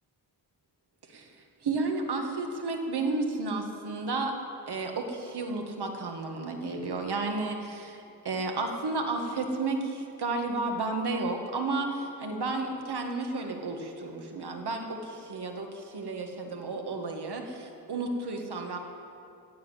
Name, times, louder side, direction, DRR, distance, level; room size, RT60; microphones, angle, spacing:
voice 1, 1.6-4.3 4.7-18.8, right 3 dB, 80° right, 3 dB, 1.8 m, -32 dB
15.0 x 7.4 x 9.6 m, 2.6 s
wide cardioid pair, 120°, 39 cm